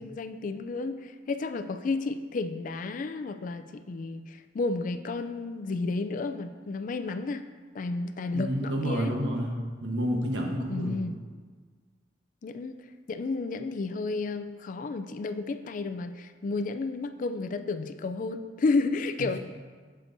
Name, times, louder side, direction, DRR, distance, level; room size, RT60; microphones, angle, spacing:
voice 1, 0.0-7.5 7.7-9.2 10.7-11.2 12.4-12.8 13.1-19.4, left 3 dB, 45° left, 10 dB, 0.3 m, -32 dB
voice 2, 8.3-11.0 19.2-19.4, equal, 80° right, 1 dB, 1.1 m, -30 dB
7.9 x 7.6 x 2.6 m, 1.5 s
head